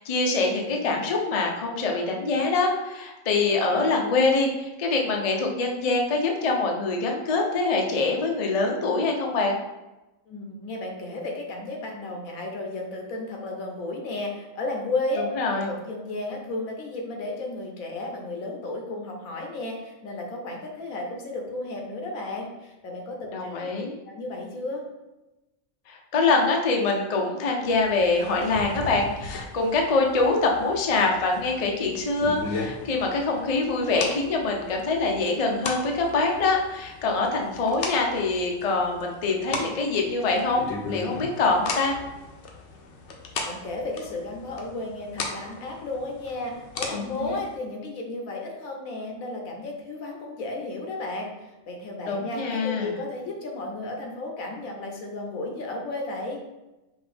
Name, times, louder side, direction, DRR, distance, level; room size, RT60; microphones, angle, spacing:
voice 1, 0.0-9.6 15.4-15.7 23.3-23.9 25.9-42.0 46.9-47.4 52.1-52.9, left 3 dB, 45° left, 1 dB, 0.4 m, -24 dB
voice 2, 10.3-15.2 15.5-23.7 24.0-24.8 43.4-56.4, left 2 dB, 85° left, 1 dB, 1.3 m, -33 dB
sound 1, 27.7-47.6, left 3 dB, 65° left, 0.9 m, -37 dB
5.2 x 2.6 x 3.4 m, 1.0 s
omnidirectional pair, 1.4 m